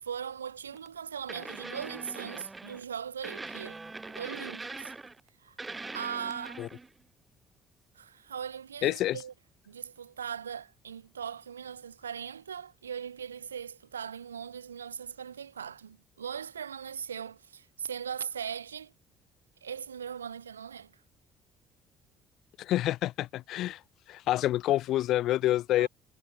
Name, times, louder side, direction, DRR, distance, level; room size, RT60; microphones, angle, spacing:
voice 1, 0.0-3.8 4.1-4.9 5.4-5.5 5.9-6.6 7.9-9.3 9.7-18.9 19.6-20.9 25.8-25.9, right 7 dB, 80° right, 4.8 m, -39 dB
sound 1, 0.7-0.9 1.3-2.8 3.2-5.3 5.6-6.9 9.2-9.3, right 3 dB, 20° right, 2.6 m, -42 dB
voice 2, 8.8-9.2 22.6-23.8 24.1-25.9, left 14 dB, 55° left, 1.6 m, -27 dB
figure-of-eight pair, 50°, 0 cm